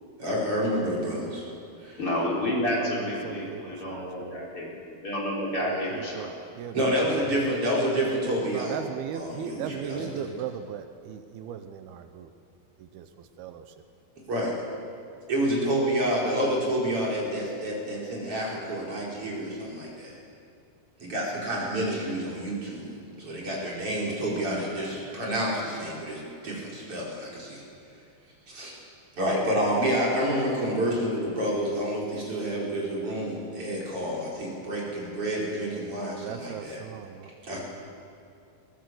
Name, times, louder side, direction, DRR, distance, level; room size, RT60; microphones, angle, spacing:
voice 1, 0.2-1.5 1.8-2.0 6.7-8.8 9.1-10.0 14.3-14.5 15.3-20.1 21.0-27.6 28.5-28.7 29.2-36.8 37.4-37.6, equal, 35° right, -4 dB, 5.5 m, -28 dB
voice 2, 2.0-6.3, left 1 dB, 35° left, -4 dB, 4.4 m, -30 dB
voice 3, 2.8-4.4 5.6-6.3 6.6-7.2 8.5-12.3 12.8-13.7 25.0-25.2 36.2-37.3, right 8 dB, 80° right, 8 dB, 2.8 m, -38 dB
21.5 x 18.0 x 7.9 m, 2.5 s
omnidirectional pair, 4.4 m